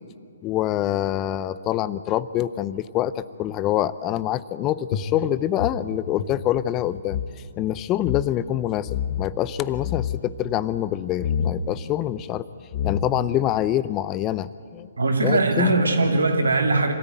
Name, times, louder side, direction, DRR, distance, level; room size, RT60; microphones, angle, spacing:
voice 1, 0.4-7.2 7.6-12.5 12.8-14.9 15.2-15.8, left 12 dB, 25° left, 16 dB, 0.5 m, -25 dB
sound 1, 4.9-7.3 7.6-7.7 8.0-8.3 8.9-9.3 9.7-10.2 11.2-11.6 12.4-12.5 12.7-13.3, left 8 dB, 40° left, 1.4 m, -28 dB
voice 2, 15.0-16.9, right 2 dB, 75° right, 4 dB, 2.6 m, -20 dB
25.5 x 13.5 x 9.2 m, 2.3 s
figure-of-eight pair, 130°, 0 cm